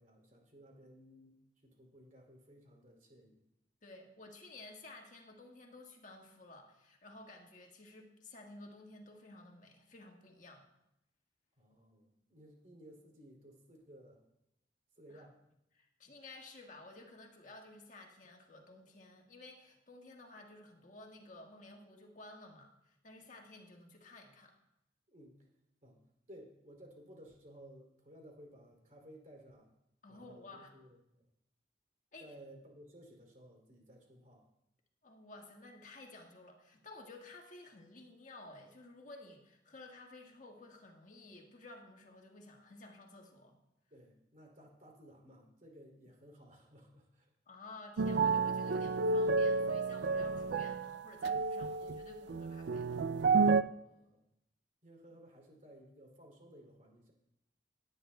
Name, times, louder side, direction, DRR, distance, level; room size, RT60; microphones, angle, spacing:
voice 1, 0.0-1.4 1.6-3.4 11.6-14.2 15.0-15.4 25.1-25.3 25.8-26.0 26.3-29.7 30.1-31.3 32.2-34.4 43.9-47.3 53.8-54.3 54.8-57.1, equal, 45° right, 1 dB, 2.9 m, -57 dB
voice 2, 3.8-10.7 15.1-15.3 15.7-24.5 30.0-30.7 32.1-32.3 35.0-43.6 47.5-53.0, left 2 dB, 45° left, 1 dB, 1.6 m, -54 dB
sound 1, 48.0-53.6, right 4 dB, 75° right, 0.4 m, -31 dB
17.5 x 9.7 x 2.3 m, 0.84 s
head